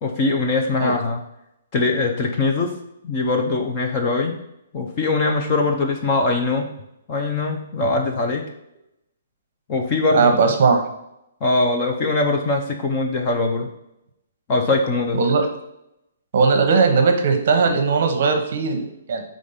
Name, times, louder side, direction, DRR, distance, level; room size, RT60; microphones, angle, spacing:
voice 1, 0.0-1.2 1.7-2.7 3.0-4.3 4.7-6.7 7.1-8.4 9.7-10.3 11.4-13.7 14.5-15.2, left 3 dB, 20° left, 2 dB, 0.5 m, -21 dB
voice 2, 10.1-10.8 15.2-15.5 16.3-19.2, right 4 dB, 40° right, 5 dB, 0.9 m, -18 dB
5.1 x 3.7 x 5.6 m, 0.83 s
hypercardioid pair, 180°, 0 cm